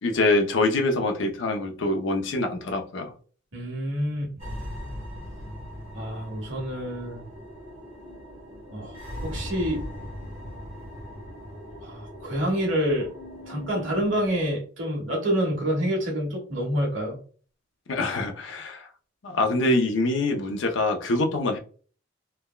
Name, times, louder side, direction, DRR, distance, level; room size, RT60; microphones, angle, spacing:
voice 1, 0.0-3.1 17.9-18.9 19.2-21.6, left 2 dB, 75° left, 0.6 m, -25 dB
voice 2, 3.5-4.3 5.9-7.2 8.7-9.8 11.8-13.1 13.5-17.2, equal, 80° right, 1.3 m, -27 dB
sound 1, 4.4-14.4, equal, 35° right, 1.1 m, -39 dB
3.3 x 2.1 x 2.2 m
head